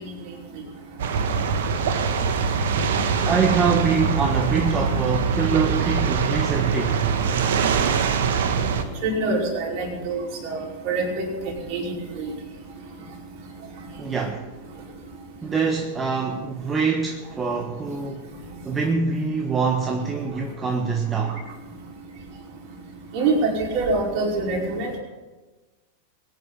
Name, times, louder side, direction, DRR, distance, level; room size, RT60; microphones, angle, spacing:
sound 1, 1.0-8.8, right 6 dB, 65° right, 1.4 m, -23 dB
voice 1, 3.2-7.1 14.0-14.5 15.4-18.2 18.6-21.4, right 5 dB, 20° right, 1.4 m, -24 dB
voice 2, 9.0-11.2 11.7-12.3 23.1-24.9, right 3 dB, 45° right, 5.1 m, -25 dB
22.0 x 10.0 x 5.7 m
figure-of-eight pair, 90°, 0 cm